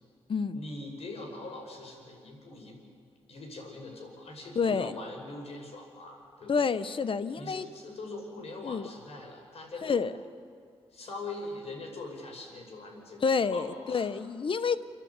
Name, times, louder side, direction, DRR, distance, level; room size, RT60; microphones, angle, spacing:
voice 1, 0.5-2.8 3.3-6.7 7.4-10.0 10.9-14.1, left 2 dB, 70° left, 2 dB, 5.3 m, -42 dB
voice 2, 4.5-4.9 6.5-7.6 8.6-8.9 9.8-10.1 13.2-14.8, left 5 dB, 50° left, 14 dB, 1.0 m, -28 dB
29.5 x 11.0 x 8.3 m, 2.2 s
supercardioid pair, 55°, 11 cm